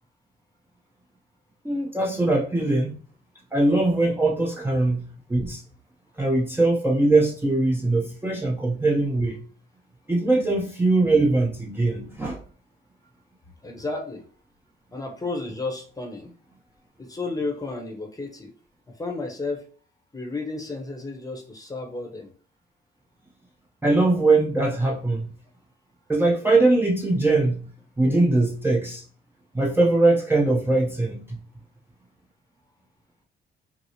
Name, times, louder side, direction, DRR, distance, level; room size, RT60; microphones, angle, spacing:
voice 1, 1.6-2.9 3.5-5.6 6.2-9.4 10.1-12.4 23.8-25.3 26.1-27.7 28.0-29.0 29.5-31.4, right 2 dB, 10° right, 0.7 m, -21 dB
voice 2, 13.6-14.2 14.9-16.3 17.0-18.5 19.0-19.7 20.1-22.3, left 3 dB, 20° left, 0.9 m, -32 dB
4.6 x 2.0 x 2.8 m
cardioid pair, 90°, 20 cm